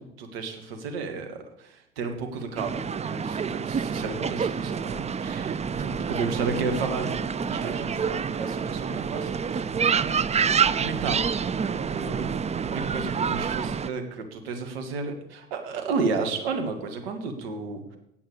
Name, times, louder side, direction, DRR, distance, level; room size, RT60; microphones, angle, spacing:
voice 1, 0.0-12.3 12.7-17.8, right 4 dB, 80° right, 6 dB, 2.0 m, -33 dB
sound 1, 2.6-13.9, right 6 dB, 25° right, 0.5 m, -27 dB
8.8 x 8.4 x 8.2 m, 0.80 s
hypercardioid pair, 65°, 30 cm